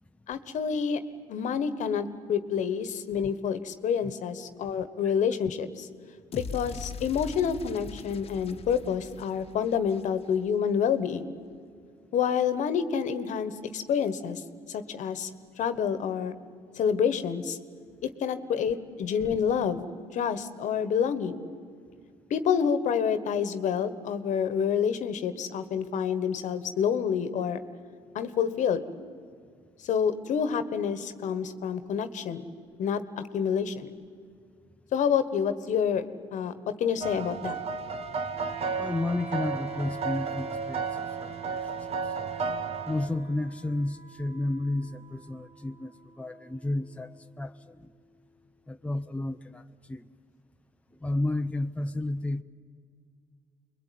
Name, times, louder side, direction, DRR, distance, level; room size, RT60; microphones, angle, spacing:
voice 1, 0.3-1.0 1.3-5.9 6.3-11.3 12.1-14.4 14.7-15.3 15.6-16.3 16.8-17.6 18.0-19.8 20.1-21.5 22.3-27.6 28.1-28.8 29.8-32.4 32.8-33.9 34.9-36.0 36.3-37.6, left 7 dB, 65° left, 12 dB, 1.4 m, -28 dB
sound 1, 6.3-10.6, left 5 dB, 45° left, 1.3 m, -41 dB
sound 2, 37.0-43.1, right 5 dB, 50° right, 1.5 m, -33 dB
Wind instrument woodwind instrument, 38.3-48.3, right 1 dB, 10° right, 2.0 m, -48 dB
voice 2, 38.8-40.9 41.2-41.7 42.8-47.9 48.7-50.1 51.0-52.4, left 2 dB, 10° left, 7 dB, 0.9 m, -32 dB
25.5 x 21.5 x 9.4 m, 2.1 s
supercardioid pair, 70°, 14 cm